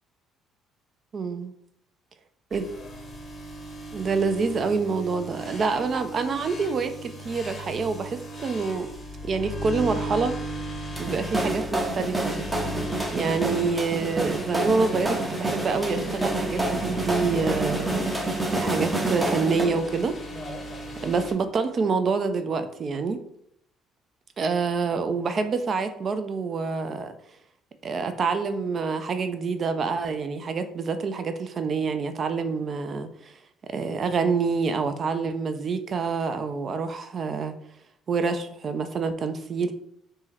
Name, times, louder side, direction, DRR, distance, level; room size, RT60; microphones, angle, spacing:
voice 1, 1.1-1.5 2.5-2.6 3.9-8.9 9.2-10.4 11.0-12.4 13.1-17.9 18.6-20.1 21.0-23.2 24.4-27.1 27.8-33.4 33.7-37.5 38.1-39.7, right 4 dB, 45° right, 9 dB, 0.3 m, -27 dB
sound 1, 2.5-21.3, equal, 35° left, 0.6 m, -37 dB
sound 2, 11.0-19.7, right 2 dB, 15° right, 0.7 m, -28 dB
3.5 x 2.1 x 2.8 m, 0.73 s
hypercardioid pair, 50°, 0 cm